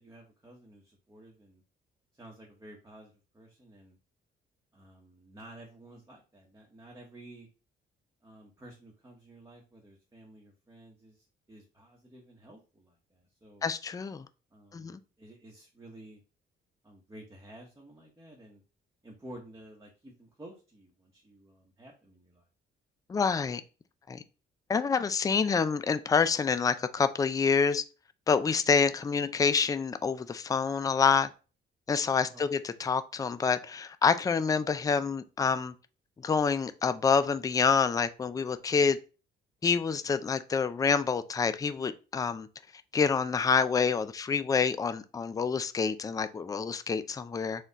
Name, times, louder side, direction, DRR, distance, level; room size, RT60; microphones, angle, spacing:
voice 1, 0.0-1.6 2.1-4.0 4.7-7.5 8.2-13.7 14.5-16.2 16.8-18.6 19.0-22.4 32.2-32.5, right 1 dB, 15° right, 1.0 m, -52 dB
voice 2, 13.6-14.3 14.7-15.0 23.1-23.6 24.1-24.2 24.7-27.8 28.3-31.3 31.9-35.7 36.2-39.0 39.6-42.5 42.9-47.7, left 5 dB, 20° left, 0.3 m, -27 dB
4.2 x 2.3 x 4.0 m
cardioid pair, 90°, 20 cm